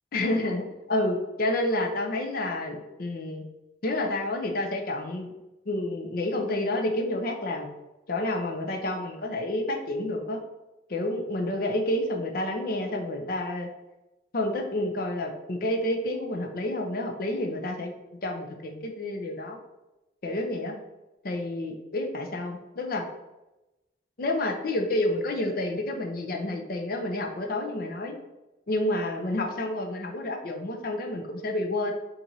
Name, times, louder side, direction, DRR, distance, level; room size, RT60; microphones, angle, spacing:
voice 1, 0.1-3.4 3.8-5.3 5.7-7.7 8.1-10.4 10.9-13.7 14.3-17.9 18.2-19.6 20.2-20.7 21.2-23.0 24.2-28.2 28.7-31.9, left 1 dB, 50° left, 3 dB, 0.6 m, -29 dB
4.5 x 2.6 x 3.9 m, 1.0 s
head